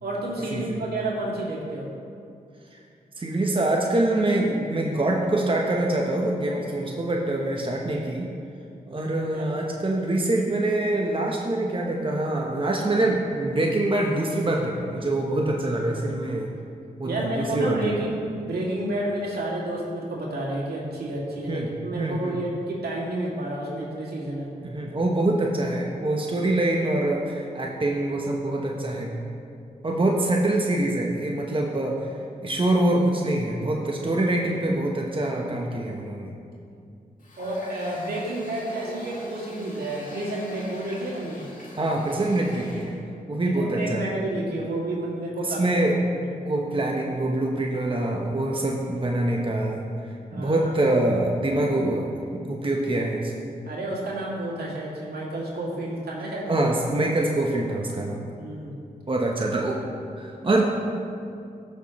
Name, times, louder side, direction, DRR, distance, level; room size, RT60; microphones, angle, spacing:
voice 1, 0.0-1.9 9.0-9.5 17.0-18.2 18.5-24.5 37.4-41.4 43.4-45.7 50.3-50.7 53.6-56.5 58.4-58.7, right 1 dB, 75° right, -5 dB, 2.5 m, -30 dB
voice 2, 3.2-8.3 8.9-16.5 17.0-17.8 21.5-21.7 21.9-22.4 24.6-29.1 29.8-32.1 32.4-36.3 41.8-42.9 43.3-44.2 45.4-46.0 46.4-52.1 52.5-53.3 56.5-58.3 59.1-59.8 60.2-60.6, right 1 dB, 30° right, -1 dB, 1.1 m, -25 dB
Water tap faucet, 37.2-43.0, left 1 dB, 55° left, 2.4 m, -43 dB
15.0 x 6.5 x 3.2 m, 2.5 s
cardioid pair, 45°, 16 cm